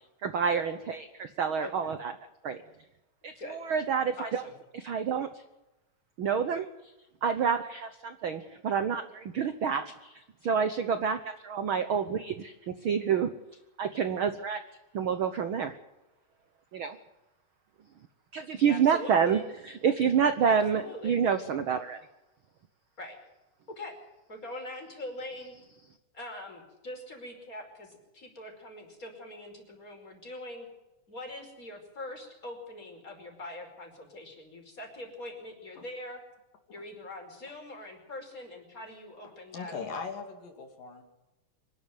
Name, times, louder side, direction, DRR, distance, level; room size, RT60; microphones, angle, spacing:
voice 1, 0.2-2.1 2.4-2.6 3.2-4.4 4.7-5.3 6.2-6.9 7.2-13.3 13.8-14.6 14.9-15.8 16.7-17.0 18.3-22.0, right 7 dB, 75° right, 10 dB, 1.2 m, -28 dB
voice 2, 1.6-1.9 3.4-3.6 4.2-4.5 18.7-19.4 20.4-21.2 23.0-23.2 23.8-24.0 24.3-25.5 26.1-30.7 31.1-36.2 36.7-39.8, left 1 dB, 25° left, 3 dB, 5.4 m, -43 dB
voice 3, 39.5-41.0, left 5 dB, 80° left, 4 dB, 4.4 m, -39 dB
25.0 x 12.0 x 9.2 m, 1.0 s
omnidirectional pair, 3.8 m